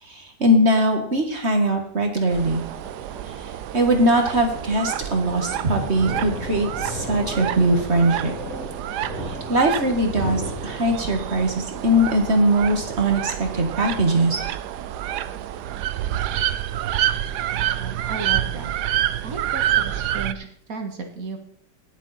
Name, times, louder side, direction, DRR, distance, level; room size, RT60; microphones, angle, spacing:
voice 1, 0.0-2.6 3.2-8.4 9.2-14.4, right 1 dB, 40° right, 4 dB, 1.9 m, -21 dB
Thunder, 1.2-18.1, equal, 55° left, 3.9 m, -37 dB
sound 1, 2.3-20.3, right 12 dB, 70° right, 1.1 m, -28 dB
voice 2, 17.5-18.7 19.2-21.4, right 4 dB, 55° right, 4 dB, 2.0 m, -34 dB
17.5 x 7.3 x 4.2 m, 0.65 s
omnidirectional pair, 1.9 m